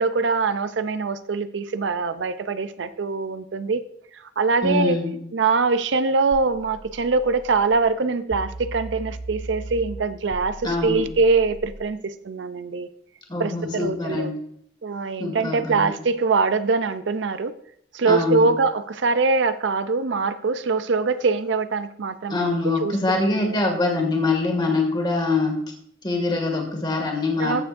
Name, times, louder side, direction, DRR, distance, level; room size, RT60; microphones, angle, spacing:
voice 1, 0.0-3.8 4.1-5.0 5.3-12.9 13.4-14.3 14.8-17.5 17.9-23.5 27.4-27.6, right 4 dB, 75° right, 12 dB, 0.5 m, -23 dB
voice 2, 4.6-5.2 10.6-11.0 13.3-14.4 15.2-15.9 18.1-18.5 22.3-25.5 26.0-27.6, left 3 dB, 25° left, 1 dB, 2.0 m, -24 dB
sound 1, 6.3-7.8 8.3-11.8, right 1 dB, ahead, 0.8 m, -38 dB
14.5 x 6.9 x 2.6 m, 0.69 s
head